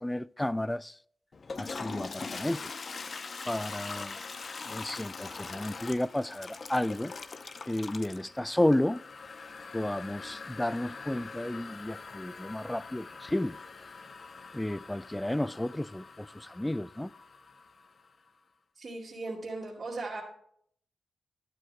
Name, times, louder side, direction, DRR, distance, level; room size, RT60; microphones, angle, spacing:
voice 1, 0.0-0.9 1.6-2.7 3.5-4.2 4.6-7.1 7.7-9.0 9.7-13.6 14.5-17.1, left 1 dB, 10° left, 0.3 m, -32 dB
Toilet flush, 1.3-18.1, left 4 dB, 50° left, 0.6 m, -43 dB
voice 2, 18.8-20.2, right 3 dB, 50° right, 2.3 m, -37 dB
11.5 x 11.5 x 2.2 m
cardioid pair, 55°, 0 cm